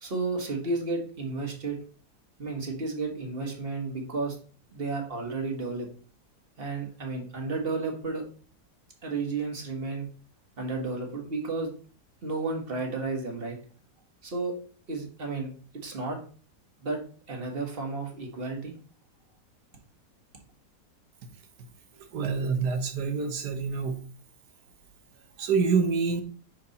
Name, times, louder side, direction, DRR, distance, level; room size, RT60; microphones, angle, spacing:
voice 1, 0.0-1.8 2.4-4.4 4.7-5.9 6.6-8.2 9.0-10.1 10.6-11.7 12.2-13.6 14.2-14.5 14.9-16.2 16.8-17.0 17.3-18.7, right 3 dB, 35° right, 2 dB, 1.6 m, -32 dB
voice 2, 22.1-24.0 25.4-26.2, right 5 dB, 80° right, 7 dB, 1.6 m, -26 dB
6.0 x 4.7 x 4.1 m, 0.41 s
omnidirectional pair, 1.7 m